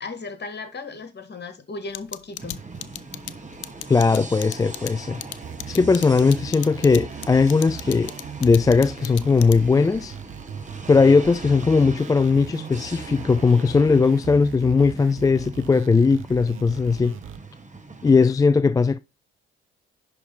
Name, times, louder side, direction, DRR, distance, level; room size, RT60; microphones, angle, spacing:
voice 1, 0.0-2.6, left 3 dB, 30° left, 2.0 m, -36 dB
sound 1, 1.9-9.8, left 15 dB, 80° left, 0.5 m, -35 dB
sound 2, 2.4-18.3, right 3 dB, 20° right, 1.7 m, -41 dB
voice 2, 3.9-5.2 5.7-8.1 8.4-10.1 10.9-17.2 18.0-19.0, left 4 dB, 10° left, 0.3 m, -18 dB
sound 3, 5.4-17.4, right 9 dB, 40° right, 0.7 m, -39 dB
10.5 x 3.6 x 5.3 m
figure-of-eight pair, 45°, 33 cm